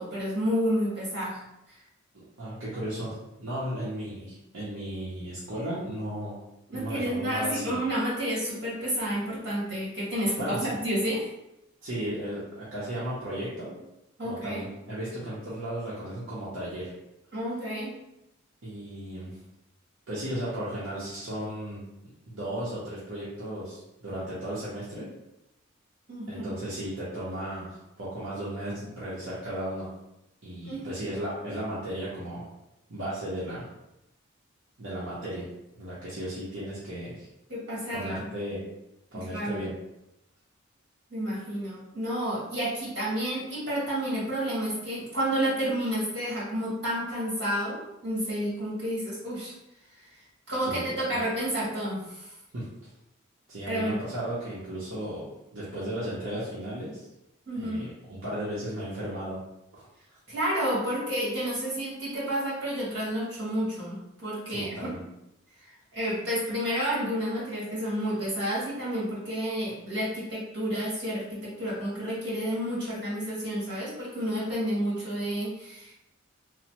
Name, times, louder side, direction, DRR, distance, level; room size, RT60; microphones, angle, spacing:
voice 1, 0.0-1.4 1.7-1.8 6.7-10.5 10.8-11.3 14.2-14.6 17.3-17.9 26.1-26.6 30.6-31.0 37.5-38.3 39.3-39.6 41.1-49.5 50.5-52.3 53.7-53.9 57.5-57.9 60.3-64.9 65.6-75.9, equal, 55° right, -7 dB, 1.5 m, -30 dB
voice 2, 2.1-6.4 6.7-7.7 10.4-10.7 11.8-13.8 14.2-16.9 18.6-19.4 20.1-21.8 22.3-25.1 26.3-29.9 30.4-32.5 32.9-33.7 34.8-35.5 35.8-37.3 37.9-38.6 39.1-39.7 50.6-50.8 51.1-51.2 52.5-52.7 53.5-57.1 57.5-59.4 59.7-59.9 64.5-65.0, right 1 dB, 70° right, -9 dB, 0.7 m, -35 dB
3.1 x 2.1 x 2.9 m, 0.88 s
head